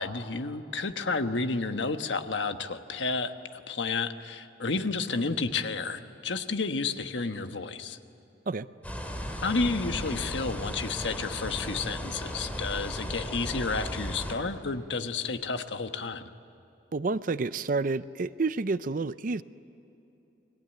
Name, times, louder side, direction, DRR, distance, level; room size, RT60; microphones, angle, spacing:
voice 1, 0.0-8.0 9.4-16.2, left 4 dB, 90° left, 8 dB, 1.3 m, -31 dB
sound 1, 8.8-14.4, equal, 10° left, 2.6 m, -36 dB
voice 2, 16.9-19.4, right 3 dB, 50° right, 15 dB, 0.5 m, -29 dB
29.5 x 21.5 x 9.1 m, 2.9 s
head